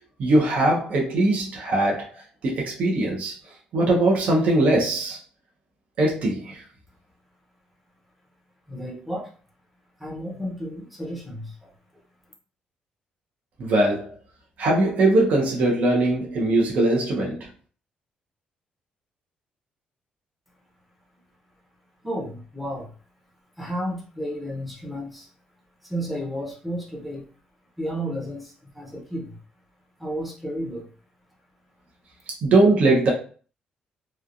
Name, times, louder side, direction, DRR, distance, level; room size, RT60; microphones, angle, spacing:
voice 1, 0.2-2.1 2.4-3.3 3.7-5.2 6.0-6.6 13.6-14.1 14.6-17.4 32.4-33.1, right 2 dB, 55° right, -3 dB, 0.8 m, -21 dB
voice 2, 8.7-9.3 10.0-11.7 22.0-22.9 23.6-25.3 25.8-27.3 27.8-29.4 30.0-30.9, equal, 5° right, -3 dB, 0.8 m, -32 dB
3.1 x 2.3 x 2.5 m, 0.40 s
cardioid pair, 150°, 3 cm